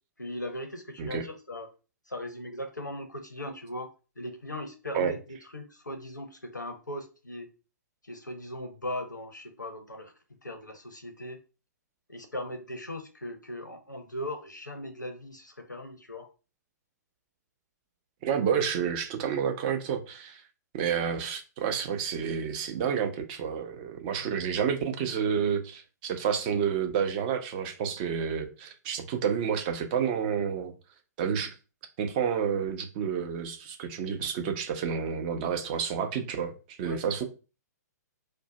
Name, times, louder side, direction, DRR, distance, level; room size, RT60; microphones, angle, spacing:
voice 1, 0.2-1.7 2.1-5.2 5.5-7.5 8.0-10.1 10.4-11.4 12.1-16.3 24.2-24.4 36.8-37.2, left 1 dB, 90° left, 0.6 m, -39 dB
voice 2, 18.2-20.4 20.7-30.7 31.2-31.5 32.0-37.2, right 7 dB, 30° right, 0.5 m, -29 dB
2.6 x 2.1 x 3.9 m
figure-of-eight pair, 120°, 10 cm